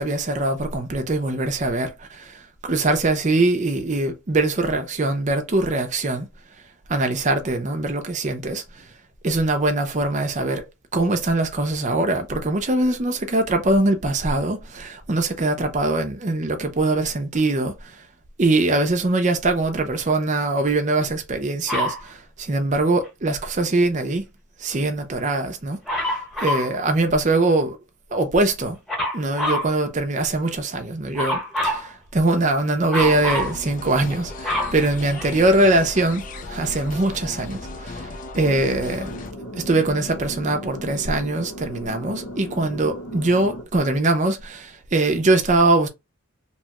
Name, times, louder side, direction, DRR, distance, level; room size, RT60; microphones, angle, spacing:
voice 1, 0.0-6.3 6.9-8.9 9.2-10.6 10.9-18.0 18.4-24.3 24.6-25.8 26.4-27.8 28.1-28.8 29.1-39.2 39.5-45.9, right 2 dB, 35° right, 0.5 m, -22 dB
Dog, 21.7-22.0 25.9-26.7 28.9-29.7 31.1-31.9 32.9-33.5 34.1-35.6 36.3-36.4, left 1 dB, ahead, 1.0 m, -25 dB
sound 1, 32.9-39.3, left 3 dB, 40° left, 0.4 m, -36 dB
sound 2, 38.4-43.6, left 1 dB, 80° left, 0.9 m, -36 dB
2.9 x 2.2 x 2.9 m
head